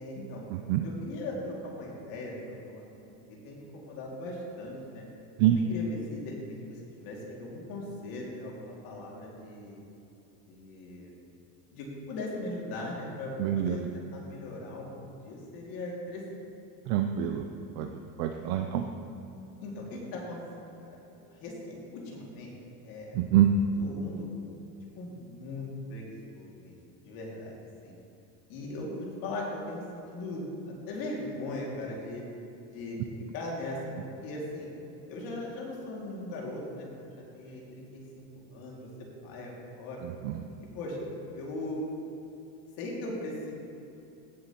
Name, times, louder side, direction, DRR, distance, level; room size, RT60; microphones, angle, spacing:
voice 1, 0.0-0.5 0.8-5.1 5.5-9.8 10.5-11.1 11.7-14.9 15.2-16.2 18.3-18.7 19.6-20.4 20.8-22.5 22.8-23.2 23.7-24.4 25.0-26.8 27.0-27.6 27.8-27.9 28.5-29.8 30.1-32.2 32.7-34.7 35.1-38.9 39.2-40.1 40.7-41.1 41.3-41.8 42.8-43.5, left 1 dB, 50° left, -2 dB, 2.4 m, -39 dB
voice 2, 0.5-0.8 5.4-5.6 13.4-13.8 16.9-17.4 17.8-17.9 18.2-18.8 23.2-23.5 40.2-40.3, right 12 dB, 55° right, 4 dB, 0.6 m, -25 dB
16.0 x 7.3 x 3.0 m, 2.9 s
supercardioid pair, 150°, 45 cm